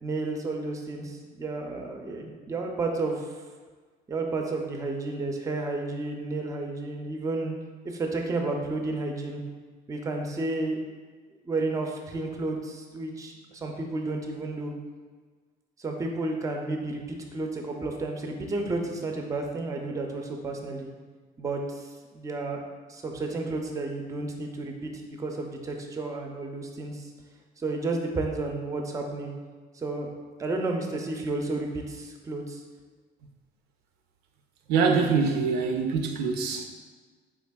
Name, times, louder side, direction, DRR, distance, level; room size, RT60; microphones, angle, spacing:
voice 1, 0.0-3.3 4.1-7.6 7.8-9.4 9.9-10.8 11.5-14.7 15.8-20.9 21.4-22.6 22.9-27.1 27.6-29.3 29.7-30.1 30.4-32.6, right 2 dB, 20° right, 2 dB, 0.4 m, -32 dB
voice 2, 34.7-36.7, right 5 dB, 80° right, 4 dB, 0.4 m, -24 dB
3.4 x 3.3 x 2.2 m, 1.4 s
cardioid pair, 110°, 17 cm